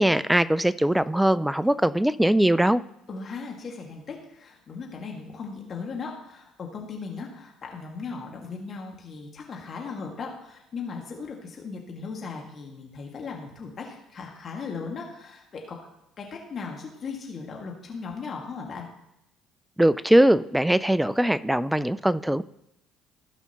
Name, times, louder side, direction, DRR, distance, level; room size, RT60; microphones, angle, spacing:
voice 1, 0.0-2.8 19.8-22.4, right 1 dB, 5° right, 18 dB, 0.4 m, -21 dB
voice 2, 3.1-15.8 16.2-18.9, left 5 dB, 45° left, 0 dB, 2.0 m, -37 dB
16.5 x 5.6 x 3.1 m, 0.83 s
hypercardioid pair, 60°, 0 cm